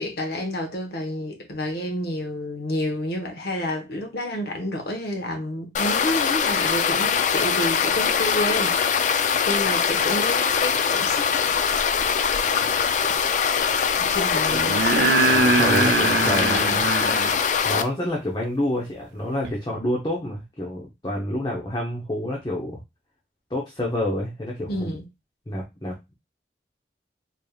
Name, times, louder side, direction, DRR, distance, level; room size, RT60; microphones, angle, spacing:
voice 1, 0.0-11.3 14.0-14.9 24.7-25.1, left 1 dB, 60° left, 1.1 m, -29 dB
sound 1, 5.7-17.8, left 7 dB, 45° left, 0.3 m, -22 dB
sound 2, 12.6-12.7 14.5-17.4 19.4-19.5, right 4 dB, 70° right, 0.4 m, -22 dB
voice 2, 15.2-16.9 17.6-22.8 23.5-24.9 25.5-26.1, left 1 dB, 25° left, 0.8 m, -28 dB
4.1 x 3.3 x 2.3 m
head